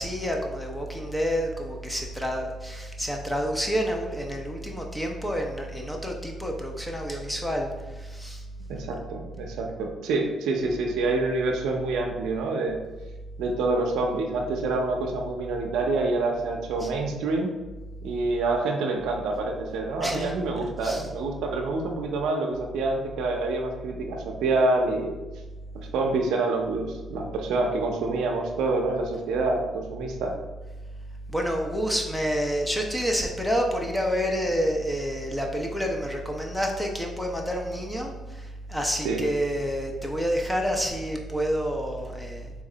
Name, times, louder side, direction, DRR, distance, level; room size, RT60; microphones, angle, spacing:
voice 1, 0.0-7.7 8.0-8.4 16.8-16.9 20.0-20.3 20.8-21.0 31.3-42.5, equal, 5° left, 1 dB, 0.7 m, -28 dB
voice 2, 8.7-12.8 13.4-17.5 18.0-25.2 25.9-30.3 39.0-39.2, right 3 dB, 85° right, 2 dB, 0.6 m, -27 dB
3.5 x 3.2 x 3.8 m, 1.2 s
cardioid pair, 90°, 0 cm